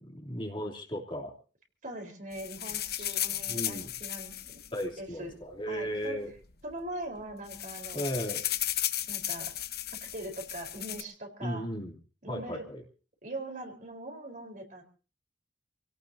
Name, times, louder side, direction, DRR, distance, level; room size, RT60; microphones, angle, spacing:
voice 1, 0.1-1.4 2.9-3.2 3.5-3.9 4.7-6.3 7.9-8.4 11.4-11.9 12.3-12.8, equal, 30° left, 0 dB, 3.1 m, -36 dB
voice 2, 1.8-4.6 5.0-5.3 5.7-6.2 6.6-8.0 9.1-9.5 10.1-11.6 12.2-12.6 13.2-14.8, right 1 dB, 45° right, 2 dB, 4.3 m, -41 dB
sound 1, 2.3-5.5 6.4-6.5 6.7-6.9 7.2-11.0, left 12 dB, 60° left, 1.1 m, -35 dB
28.5 x 17.5 x 2.8 m, 0.36 s
head